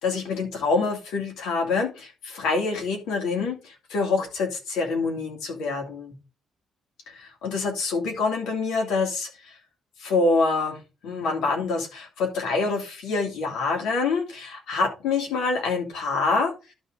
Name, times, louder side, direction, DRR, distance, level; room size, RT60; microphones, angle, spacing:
voice 1, 0.0-6.1 7.1-9.6 10.0-16.5, left 4 dB, 85° left, 2 dB, 2.7 m, -26 dB
11.5 x 4.0 x 4.8 m, 0.29 s
cardioid pair, 90°, 0 cm